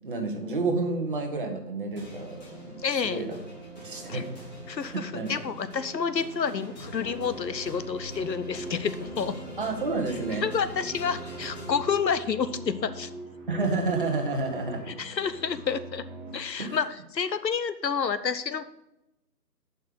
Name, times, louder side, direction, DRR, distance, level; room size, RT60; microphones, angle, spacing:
voice 1, 0.0-3.4 3.8-4.3 4.9-5.4 9.6-10.5 13.5-14.9 16.6-16.8, right 3 dB, 30° right, 3 dB, 1.1 m, -30 dB
sound 1, 2.0-12.6, right 1 dB, 25° left, 2.3 m, -43 dB
voice 2, 2.8-3.2 4.1-4.2 4.7-9.3 10.4-13.1 15.0-16.0 16.3-16.9 17.1-18.6, left 6 dB, 80° left, 13 dB, 0.8 m, -29 dB
sound 2, 7.0-16.3, right 1 dB, ahead, 1.4 m, -43 dB
7.4 x 5.6 x 6.3 m, 0.89 s
figure-of-eight pair, 160°, 50 cm